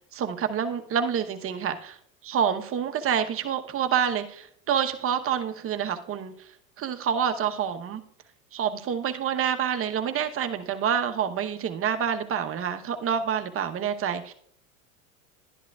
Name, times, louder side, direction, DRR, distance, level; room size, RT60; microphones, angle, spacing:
voice 1, 0.0-2.0 2.2-6.5 6.8-8.0 8.5-14.3, right 8 dB, 30° right, 7 dB, 1.0 m, -27 dB
11.5 x 10.5 x 2.4 m, 0.65 s
hypercardioid pair, 95°, 42 cm